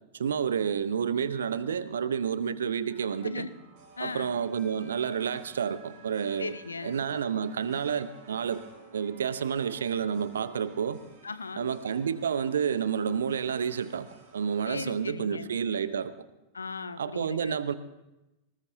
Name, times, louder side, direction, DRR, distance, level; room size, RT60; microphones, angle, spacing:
voice 1, 0.2-3.5 4.0-6.5 6.8-8.6 8.9-11.0 11.6-14.1 14.3-16.1 17.0-17.7, right 7 dB, 65° right, 15 dB, 0.8 m, -30 dB
sound 1, 2.9-14.7, right 4 dB, 50° right, 5.1 m, -54 dB
voice 2, 3.2-3.5 4.0-4.4 6.4-7.0 11.2-11.7 14.6-15.5 16.5-17.6, left 4 dB, 75° left, 14 dB, 0.7 m, -38 dB
19.5 x 19.5 x 2.7 m, 0.96 s
figure-of-eight pair, 90°, 0 cm